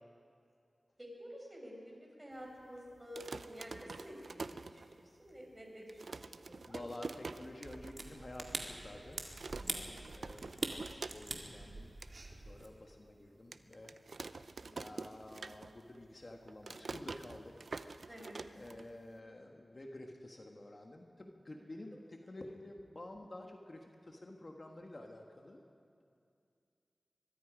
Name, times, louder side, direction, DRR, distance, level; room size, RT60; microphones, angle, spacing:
voice 1, 1.0-6.8 9.6-10.0 14.6-14.8 18.1-18.3, equal, 20° right, -1 dB, 5.5 m, -51 dB
sound 1, 3.0-5.3 5.6-5.7 5.9-7.9 8.3-8.4 8.6-9.0 9.4-11.5 11.8-12.1 12.6-12.7 13.5-16.0 16.2-19.2, right 3 dB, 75° right, 0.6 m, -46 dB
voice 2, 6.6-9.2 9.6-11.9 12.3-17.6 17.9-18.1 18.5-25.6, left 1 dB, 40° left, 2 dB, 1.5 m, -50 dB
sound 2, 7.6-12.7, right 2 dB, 60° right, 2.1 m, -45 dB
23.5 x 22.0 x 5.1 m, 2.4 s
wide cardioid pair, 80°, 0 cm